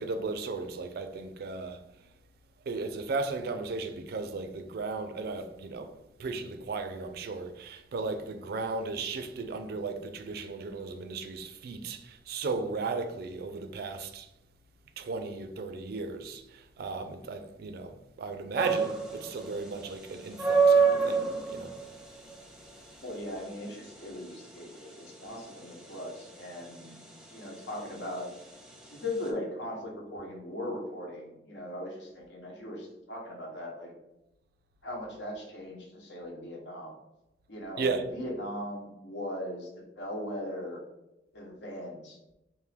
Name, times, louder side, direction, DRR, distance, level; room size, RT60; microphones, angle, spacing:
voice 1, 0.0-1.8 2.7-5.9 6.2-14.3 15.0-21.2 21.5-21.7 37.8-38.0, right 3 dB, 60° right, 0.4 m, -35 dB
sound 1, 18.6-29.3, right 5 dB, 5° right, 0.5 m, -30 dB
voice 2, 23.0-27.0 27.3-28.3 28.9-33.9 34.8-36.9 37.5-40.8 41.3-42.2, left 1 dB, 80° left, 1.0 m, -39 dB
3.5 x 2.6 x 3.3 m
head